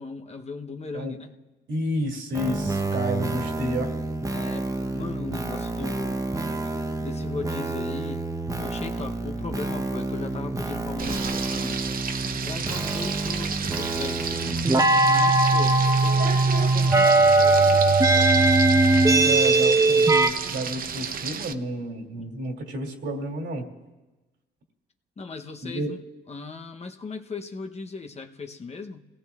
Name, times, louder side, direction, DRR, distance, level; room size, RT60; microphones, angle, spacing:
voice 1, 0.0-1.4 4.3-6.2 7.0-8.2 8.6-11.8 12.3-18.0 22.1-22.4 25.2-26.0 26.3-29.1, left 4 dB, 35° left, 5 dB, 0.8 m, -38 dB
voice 2, 1.7-3.9 19.1-23.7 25.6-25.9, right 1 dB, 70° right, 0 dB, 2.5 m, -30 dB
sound 1, 2.3-20.3, right 2 dB, 15° right, 0.8 m, -23 dB
Frying (food), 11.0-21.5, right 6 dB, 45° right, 0.7 m, -32 dB
30.0 x 17.5 x 2.4 m, 1.1 s
cardioid pair, 90°, 20 cm